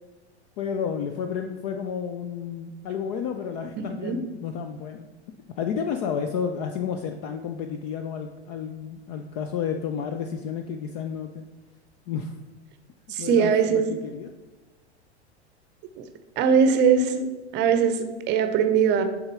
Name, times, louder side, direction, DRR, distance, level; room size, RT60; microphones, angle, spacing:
voice 1, 0.6-5.1 5.6-11.5 12.1-12.4 13.2-14.3, left 7 dB, 35° left, 6 dB, 0.4 m, -31 dB
voice 2, 3.8-4.2 13.1-13.9 16.0-16.1 16.4-19.0, right 6 dB, 30° right, 9 dB, 0.7 m, -21 dB
6.6 x 3.7 x 5.6 m, 1.2 s
figure-of-eight pair, 90°, 34 cm